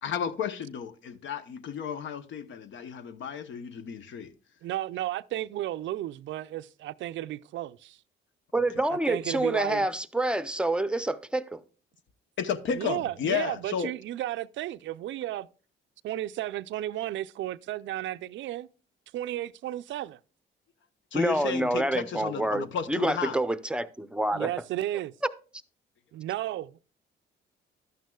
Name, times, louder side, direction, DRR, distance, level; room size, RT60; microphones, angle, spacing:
voice 1, 0.0-4.3 12.4-13.9 21.1-23.4, left 7 dB, 70° left, 0.8 m, -33 dB
voice 2, 4.6-8.0 8.9-9.9 12.7-15.5 16.0-18.7 19.1-20.2 24.3-25.1 26.1-26.8, right 13 dB, 70° right, 0.4 m, -33 dB
voice 3, 8.5-11.6 21.1-24.5, right 1 dB, 5° right, 0.6 m, -27 dB
12.0 x 9.2 x 2.3 m
cardioid pair, 90°, 20 cm